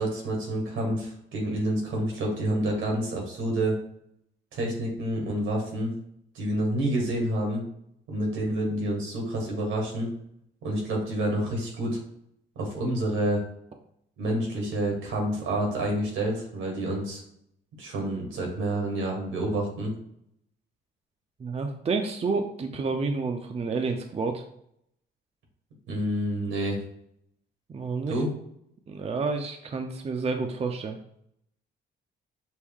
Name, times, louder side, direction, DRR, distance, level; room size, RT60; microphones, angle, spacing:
voice 1, 0.0-3.8 4.5-5.9 6.3-7.6 8.1-10.1 10.6-12.0 12.5-13.4 14.2-17.2 17.8-19.9 25.9-26.8 28.1-28.3, right 1 dB, 85° right, 0 dB, 1.7 m, -28 dB
voice 2, 21.4-24.5 27.7-28.2 28.9-31.0, right 4 dB, 30° right, 5 dB, 0.5 m, -29 dB
6.2 x 2.1 x 3.6 m, 0.73 s
cardioid pair, 90°, 20 cm